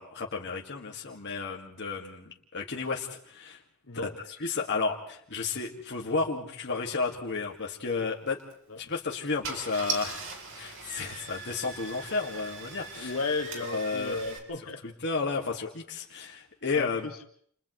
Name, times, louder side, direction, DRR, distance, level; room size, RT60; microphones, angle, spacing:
voice 1, 0.0-3.6 3.9-4.1 4.4-8.4 8.8-13.1 13.7-14.2 15.0-17.1, left 4 dB, 55° left, -1 dB, 2.0 m, -32 dB
voice 2, 3.9-4.2 8.7-8.8 12.9-14.8 16.7-17.2, left 3 dB, 70° left, 2 dB, 2.2 m, -34 dB
Car / Engine starting, 8.3-8.5 9.1-9.2 9.4-14.4, right 4 dB, 60° right, 3.5 m, -39 dB
29.5 x 28.5 x 3.2 m, 0.62 s
head